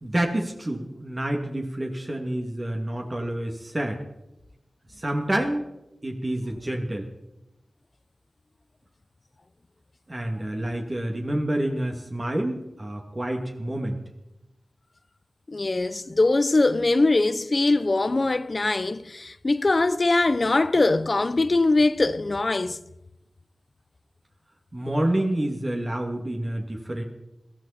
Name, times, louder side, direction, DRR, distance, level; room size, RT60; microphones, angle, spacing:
voice 1, 0.0-4.0 4.9-5.7 6.0-7.1 10.1-14.0 24.7-27.0, right 1 dB, 30° right, 2.7 m, -28 dB
voice 2, 15.5-22.8, left 2 dB, 45° left, 0.9 m, -22 dB
21.5 x 15.0 x 4.4 m
wide cardioid pair, 60°, 0 cm